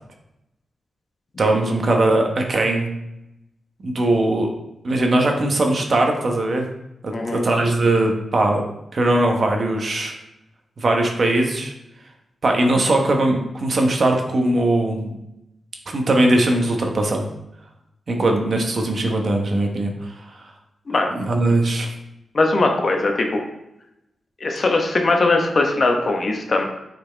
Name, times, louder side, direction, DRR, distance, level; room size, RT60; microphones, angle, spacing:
voice 1, 1.4-2.9 3.8-4.5 4.8-6.7 7.0-8.7 8.9-10.1 10.8-11.7 12.4-15.1 15.9-17.2 18.1-20.4 21.2-21.9, right 2 dB, 45° right, 2 dB, 1.0 m, -20 dB
voice 2, 7.1-7.4 20.9-21.1 22.3-23.4 24.4-26.7, left 2 dB, 40° left, 3 dB, 1.0 m, -20 dB
8.3 x 4.3 x 3.4 m, 0.87 s
wide cardioid pair, 120°, 0 cm